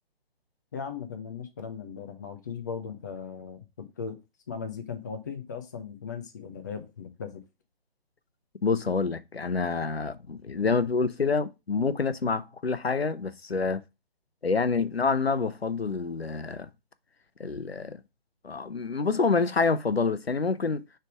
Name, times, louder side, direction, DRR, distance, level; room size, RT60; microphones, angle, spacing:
voice 1, 0.7-4.2 4.5-7.4, left 6 dB, 20° left, 0.5 m, -38 dB
voice 2, 8.6-13.8 14.4-16.7 17.4-18.0 18.4-20.8, left 4 dB, 85° left, 0.7 m, -27 dB
6.5 x 3.5 x 4.5 m
figure-of-eight pair, 145°, 30 cm